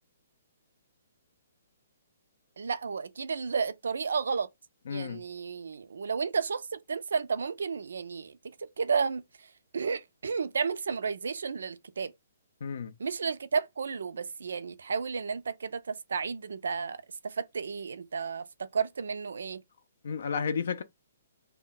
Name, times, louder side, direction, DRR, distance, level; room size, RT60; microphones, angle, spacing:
voice 1, 2.6-4.5 4.9-8.3 8.8-9.5 9.7-12.1 13.0-17.0 17.2-19.6, right 5 dB, 80° right, 0.4 m, -32 dB
voice 2, 4.9-5.2 12.6-12.9 20.0-20.8, left 6 dB, 60° left, 0.5 m, -32 dB
2.2 x 2.1 x 3.8 m
hypercardioid pair, 165°, 0 cm